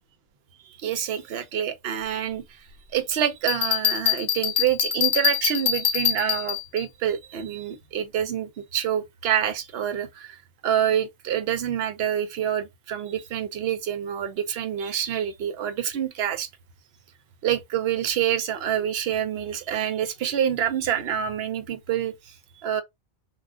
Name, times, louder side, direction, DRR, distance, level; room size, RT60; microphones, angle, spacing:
voice 1, 0.7-2.6 2.9-16.5 17.4-22.3 22.6-22.8, right 10 dB, 70° right, 0.8 m, -27 dB
Bell, 3.5-6.8, left 10 dB, 50° left, 0.7 m, -24 dB
2.4 x 2.4 x 3.5 m
omnidirectional pair, 1.1 m